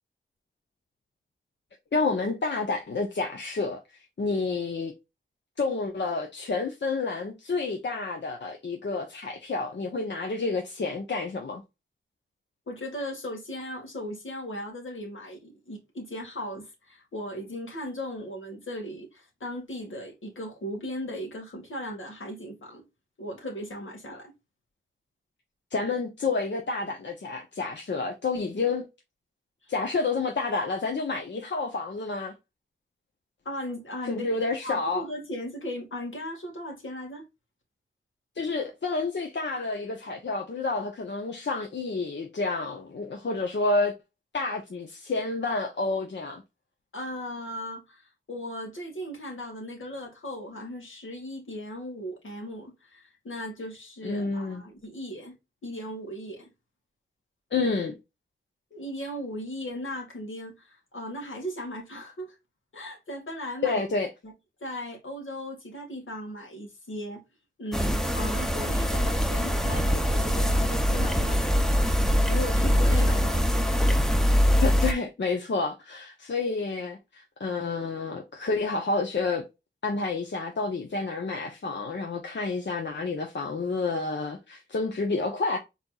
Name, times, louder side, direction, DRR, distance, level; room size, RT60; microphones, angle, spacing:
voice 1, 1.9-4.9 5.6-11.6 25.7-28.9 29.7-32.3 34.1-35.0 38.4-43.9 44.3-46.4 54.0-54.6 57.5-57.9 63.6-64.1 74.6-79.4 79.8-85.6, left 3 dB, 60° left, 0.9 m, -29 dB
voice 2, 12.7-22.8 23.2-24.3 33.5-34.3 34.6-37.2 46.9-55.4 55.6-56.5 58.7-62.4 62.7-63.8 64.2-64.3 64.6-67.2 67.6-73.4, equal, 80° left, 2.0 m, -37 dB
sound 1, 67.7-74.9, equal, ahead, 0.7 m, -23 dB
4.3 x 4.1 x 2.4 m
wide cardioid pair, 60°, 20 cm